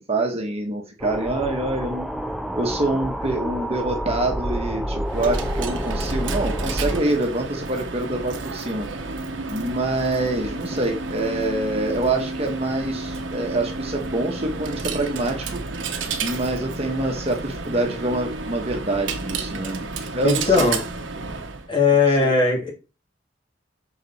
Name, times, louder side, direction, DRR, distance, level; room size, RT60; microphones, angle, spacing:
voice 1, 0.1-2.1 2.6-8.9 9.4-15.6 16.2-19.9 20.1-20.7 22.2-22.3, right 2 dB, 35° right, 2 dB, 1.2 m, -26 dB
sound 1, 1.0-7.0, equal, ahead, 0.4 m, -28 dB
Coin (dropping), 5.0-21.7, right 3 dB, 90° right, 1.0 m, -31 dB
voice 2, 20.2-20.8 21.7-22.7, left 4 dB, 25° left, -2 dB, 2.4 m, -18 dB
6.0 x 4.9 x 4.1 m, 0.31 s
head